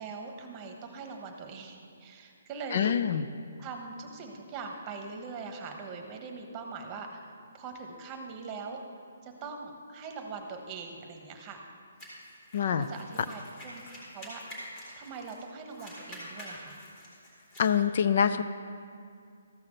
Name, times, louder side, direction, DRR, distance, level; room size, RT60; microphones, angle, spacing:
voice 1, 0.0-3.0 3.6-7.3 7.5-8.8 9.2-11.6 12.6-13.8 14.1-14.6 15.0-16.8, right 4 dB, 20° right, 3 dB, 1.1 m, -42 dB
voice 2, 2.7-3.2 12.5-12.9 17.6-18.4, left 7 dB, 50° left, 11 dB, 0.4 m, -25 dB
sound 1, 12.0-15.4 15.7-17.7, equal, 25° left, 3.3 m, -46 dB
14.0 x 5.8 x 6.6 m, 2.4 s
hypercardioid pair, 160°, 0 cm